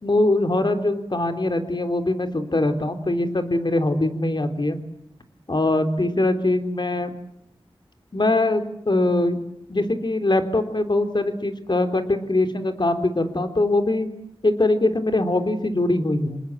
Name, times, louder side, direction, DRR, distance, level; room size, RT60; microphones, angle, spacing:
voice 1, 0.0-4.8 5.5-7.1 8.1-9.4 9.7-14.1 14.4-16.4, left 2 dB, 50° left, 7 dB, 3.6 m, -22 dB
28.0 x 20.5 x 8.9 m, 0.72 s
wide cardioid pair, 55°, 10 cm